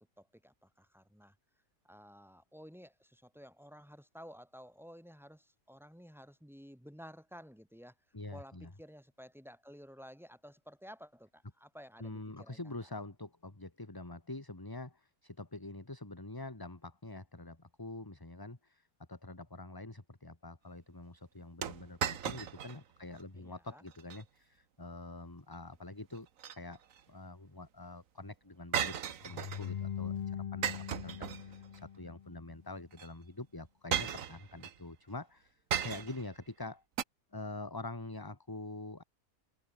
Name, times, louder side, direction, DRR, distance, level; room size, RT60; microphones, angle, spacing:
voice 1, 0.0-1.4 1.8-7.9 8.3-12.7 23.4-23.8, equal, ahead, 7.6 m, -53 dB
voice 2, 8.1-8.7 12.0-36.8 37.3-39.0, left 2 dB, 15° left, 1.8 m, -46 dB
sound 1, 21.6-22.8 23.2-23.3 23.9-24.2 26.1-27.0 28.7-29.7 30.6-31.8 32.9-33.1 33.9-34.8 35.7-36.3 37.0-37.1, right 9 dB, 70° right, 1.4 m, -36 dB
sound 2, 29.2-32.4, left 8 dB, 80° left, 0.3 m, -41 dB
omnidirectional pair, 1.5 m